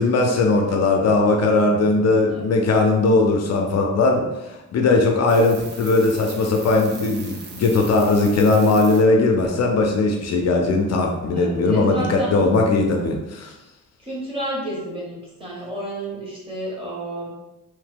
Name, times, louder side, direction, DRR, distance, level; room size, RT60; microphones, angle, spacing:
voice 1, 0.0-13.5, left 3 dB, 60° left, 2 dB, 0.4 m, -19 dB
voice 2, 1.4-1.7 2.3-2.6 11.3-12.4 14.0-17.3, right 1 dB, 20° right, -5 dB, 0.9 m, -31 dB
sound 1, 5.3-9.0 9.4-9.5, right 4 dB, 35° right, 0.4 m, -39 dB
3.0 x 2.1 x 3.4 m, 1.0 s
wide cardioid pair, 150°, 30 cm